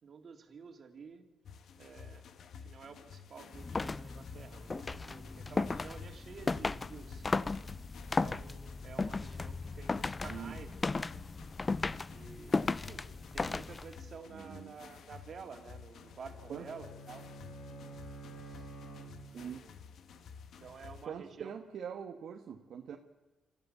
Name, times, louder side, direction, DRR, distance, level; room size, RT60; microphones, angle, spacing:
voice 1, 0.0-1.3 1.8-2.3 2.6-7.3 8.0-11.1 12.1-17.3 18.4-19.8 20.6-21.5, right 5 dB, 50° right, 5 dB, 2.8 m, -51 dB
sound 1, 1.4-21.1, left 6 dB, 70° left, 1.3 m, -52 dB
sound 2, 3.5-14.1, left 3 dB, 25° left, 0.5 m, -36 dB
voice 2, 14.3-14.8 16.5-16.7 19.3-19.6 21.1-23.0, right 8 dB, 70° right, 3 dB, 1.3 m, -43 dB
Bowed string instrument, 16.0-19.7, right 3 dB, 85° left, 5.6 m, -50 dB
26.5 x 14.5 x 6.9 m, 1.2 s
cardioid pair, 85°, 0 cm